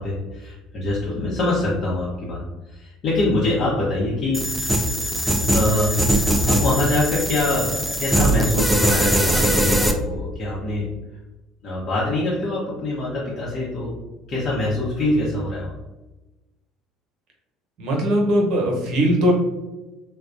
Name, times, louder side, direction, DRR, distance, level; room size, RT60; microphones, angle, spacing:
voice 1, 0.0-2.4 2.7-4.5 5.5-10.9 11.6-13.9 14.3-15.7, left 2 dB, 45° left, -7 dB, 0.8 m, -24 dB
sound 1, 4.3-9.9, right 1 dB, 5° right, 0.4 m, -21 dB
voice 2, 17.8-19.3, equal, 60° right, -1 dB, 0.9 m, -19 dB
3.3 x 2.2 x 2.5 m, 1.1 s
hypercardioid pair, 65°, 0 cm